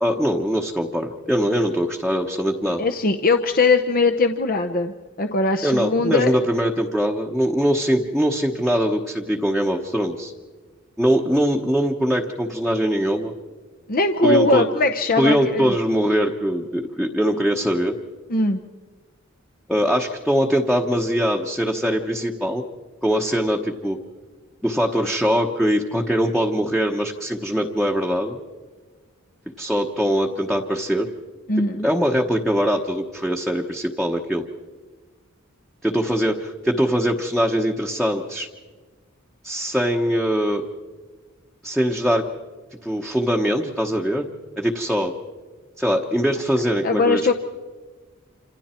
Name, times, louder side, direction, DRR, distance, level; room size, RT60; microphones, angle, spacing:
voice 1, 0.0-2.8 5.6-10.3 11.0-13.3 14.2-14.7 15.2-17.9 19.7-22.6 23.0-24.0 24.6-28.4 29.6-31.1 31.8-34.5 35.8-38.5 39.4-40.6 41.6-42.3 42.8-44.3 44.6-45.1 45.8-47.3, equal, ahead, 1 dB, 1.1 m, -22 dB
voice 2, 2.8-6.3 13.9-15.7 18.3-18.6 31.5-31.9 46.8-47.3, left 3 dB, 45° left, 7 dB, 0.9 m, -20 dB
28.0 x 26.5 x 4.4 m, 1.4 s
head